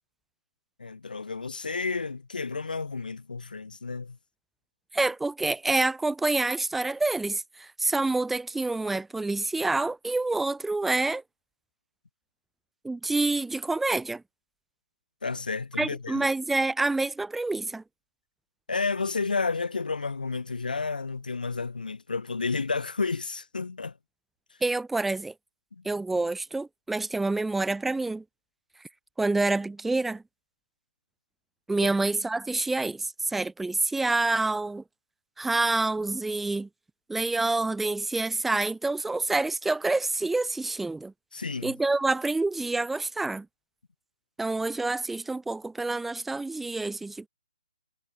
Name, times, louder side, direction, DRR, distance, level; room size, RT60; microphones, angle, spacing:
voice 1, 0.8-4.2 15.2-16.3 18.7-23.9 25.7-25.8 41.3-41.7, left 4 dB, 85° left, 0.8 m, -31 dB
voice 2, 4.9-11.2 12.8-14.2 15.8-17.8 24.6-25.3 25.8-28.2 29.2-30.2 31.7-34.8 35.4-36.7 37.1-41.1 41.6-43.5 44.4-47.3, right 3 dB, 5° right, 0.6 m, -27 dB
hypercardioid pair, 145°, 5 cm